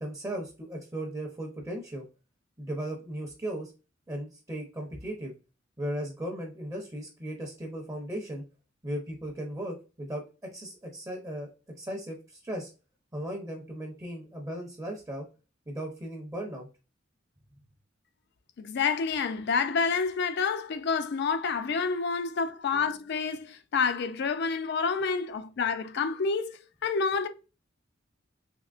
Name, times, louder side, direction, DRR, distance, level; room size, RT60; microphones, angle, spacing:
voice 1, 0.0-2.1 2.6-3.7 4.1-5.3 5.8-8.4 8.8-11.5 11.8-12.7 13.1-15.3 15.7-16.7, right 1 dB, 15° right, 0.6 m, -36 dB
voice 2, 18.6-27.3, left 5 dB, 60° left, 0.4 m, -28 dB
3.6 x 2.8 x 2.4 m
head